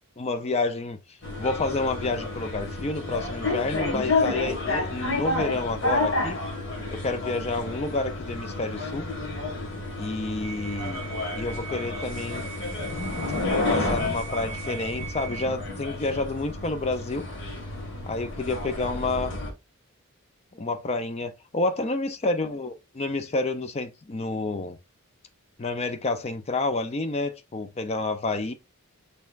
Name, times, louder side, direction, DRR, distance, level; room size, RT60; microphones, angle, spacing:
voice 1, 0.2-6.4 6.9-9.0 10.0-11.0 11.4-12.5 13.7-17.2 18.0-19.3 20.5-24.8 25.6-28.5, left 2 dB, 30° left, 0.4 m, -29 dB
sound 1, 1.2-19.5, left 2 dB, 55° left, 1.7 m, -30 dB
6.4 x 3.4 x 2.4 m
head